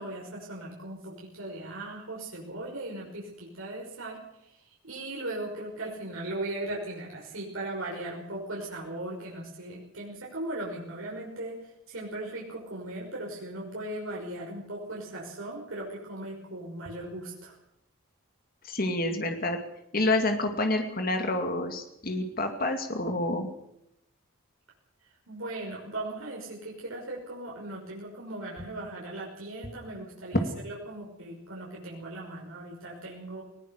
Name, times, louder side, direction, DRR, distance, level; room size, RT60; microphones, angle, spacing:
voice 1, 0.0-17.6 25.3-33.4, right 1 dB, 80° right, -3 dB, 6.0 m, -38 dB
voice 2, 18.6-19.6 19.9-23.5, left 2 dB, 45° left, 5 dB, 2.5 m, -28 dB
20.5 x 19.5 x 6.7 m, 0.77 s
head